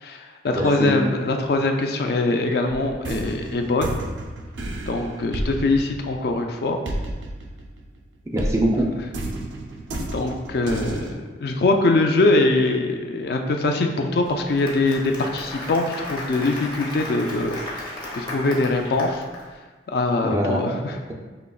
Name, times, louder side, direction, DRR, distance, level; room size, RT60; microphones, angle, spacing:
voice 1, 0.0-3.9 4.9-6.8 10.1-11.1 11.4-17.5 17.8-19.2 19.9-21.0, left 2 dB, 55° left, 4 dB, 0.3 m, -22 dB
voice 2, 0.6-1.0 8.3-8.9 20.2-21.1, equal, 15° right, 0 dB, 0.4 m, -23 dB
sound 1, 2.7-8.0 8.4-11.1, right 1 dB, 90° right, 0.5 m, -31 dB
Applause, 14.3-19.4, left 1 dB, 25° left, 0.7 m, -34 dB
5.3 x 2.9 x 2.3 m, 1.3 s
head